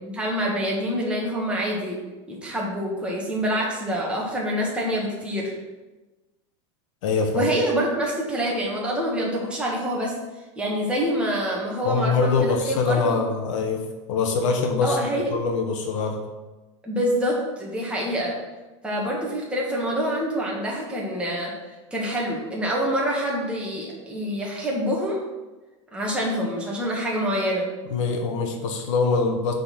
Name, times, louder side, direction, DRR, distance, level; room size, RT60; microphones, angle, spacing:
voice 1, 0.0-2.0 2.3-5.5 7.3-10.1 10.6-13.2 14.8-15.3 16.8-18.3 18.8-21.5 21.9-25.2 25.9-27.7, equal, 5° right, -4 dB, 1.8 m, -26 dB
voice 2, 7.0-7.5 11.8-13.8 14.1-16.2 27.9-29.5, left 4 dB, 80° left, 3 dB, 1.4 m, -24 dB
6.6 x 4.2 x 6.1 m, 1.2 s
supercardioid pair, 120°, 16 cm